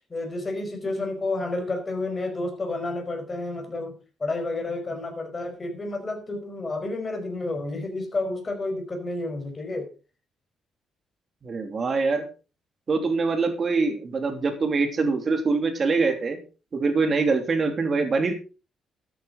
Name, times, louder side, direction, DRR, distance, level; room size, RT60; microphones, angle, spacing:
voice 1, 0.1-3.9 4.2-9.9, left 2 dB, 30° left, 4 dB, 5.0 m, -30 dB
voice 2, 11.4-12.2 12.9-16.4 16.7-18.3, right 4 dB, 40° right, 6 dB, 3.0 m, -24 dB
13.0 x 9.4 x 4.1 m, 0.34 s
cardioid pair, 90°, 0 cm